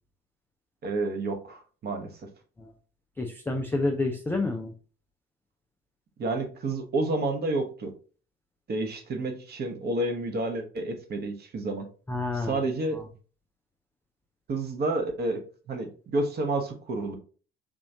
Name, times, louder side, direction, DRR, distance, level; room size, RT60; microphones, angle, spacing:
voice 1, 0.8-2.1 6.2-7.9 8.7-11.9 12.3-13.0 14.5-17.2, right 2 dB, 30° right, 5 dB, 0.9 m, -30 dB
voice 2, 3.2-4.7 12.1-12.6, left 2 dB, 5° left, 2 dB, 0.3 m, -29 dB
3.6 x 3.0 x 2.7 m, 0.39 s
figure-of-eight pair, 60°, 33 cm